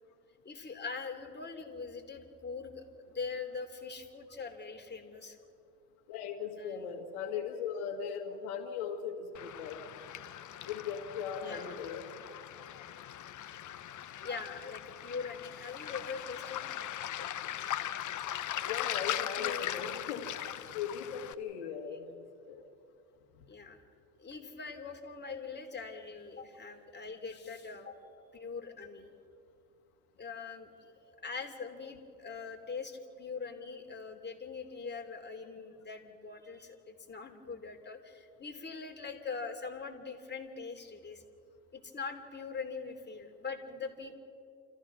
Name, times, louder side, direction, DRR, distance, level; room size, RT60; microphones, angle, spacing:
voice 1, 0.4-5.4 6.6-6.9 11.4-11.8 14.2-16.7 17.2-17.3 19.4-19.9 21.9-22.0 23.5-23.8 24.2-28.0 28.3-29.1 30.2-41.2 41.7-44.2, left 5 dB, 25° left, 4 dB, 3.1 m, -42 dB
voice 2, 6.1-9.8 10.6-12.0 18.6-20.3 20.7-22.6 23.4-23.5, left 7 dB, 85° left, 2 dB, 2.1 m, -38 dB
Waves surf, 9.3-21.3, left 11 dB, 45° left, 1.0 m, -39 dB
30.0 x 14.5 x 6.1 m, 2.5 s
hypercardioid pair, 75°, 42 cm